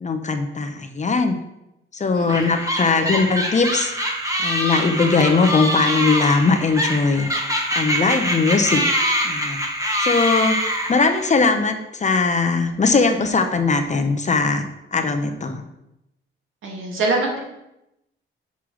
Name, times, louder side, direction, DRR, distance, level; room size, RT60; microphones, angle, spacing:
voice 1, 0.0-1.3 1.9-3.9 4.4-7.3 7.7-8.8 9.2-9.6 10.0-10.6 10.9-14.6 14.9-15.6, left 4 dB, 35° left, 6 dB, 0.9 m, -20 dB
voice 2, 2.1-2.5 2.8-3.1 16.6-17.4, right 2 dB, 70° right, -1 dB, 2.5 m, -25 dB
sound 1, 2.3-11.3, equal, 15° right, 1.6 m, -24 dB
6.3 x 5.5 x 6.3 m, 0.87 s
cardioid pair, 105°, 21 cm